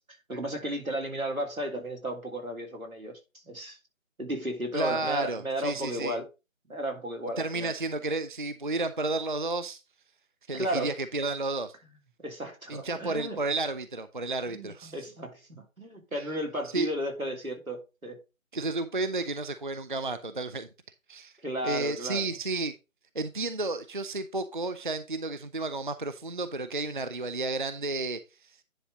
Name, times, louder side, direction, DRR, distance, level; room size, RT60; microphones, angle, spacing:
voice 1, 0.3-3.2 3.4-3.8 4.2-6.2 6.7-7.7 10.5-10.9 12.2-13.4 14.5-18.2 21.4-22.3, equal, 90° right, 3.3 m, -34 dB
voice 2, 4.7-6.2 7.4-9.8 10.5-11.7 12.7-14.9 16.7-16.9 18.5-20.7 21.1-21.3 21.6-22.7 23.1-28.5, right 3 dB, 40° right, 0.5 m, -32 dB
10.0 x 4.0 x 4.9 m
figure-of-eight pair, 150°, 41 cm